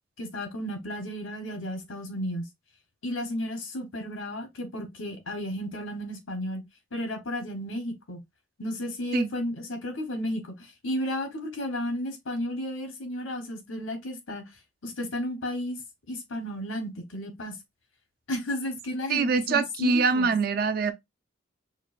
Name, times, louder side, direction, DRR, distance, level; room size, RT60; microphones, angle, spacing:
voice 1, 0.2-2.5 3.0-6.6 6.9-8.2 8.6-14.4 14.8-15.8 16.1-17.6 18.3-20.3, left 1 dB, 80° left, 1.0 m, -33 dB
voice 2, 19.1-20.9, right 4 dB, 45° right, 0.3 m, -24 dB
4.6 x 2.2 x 2.4 m
head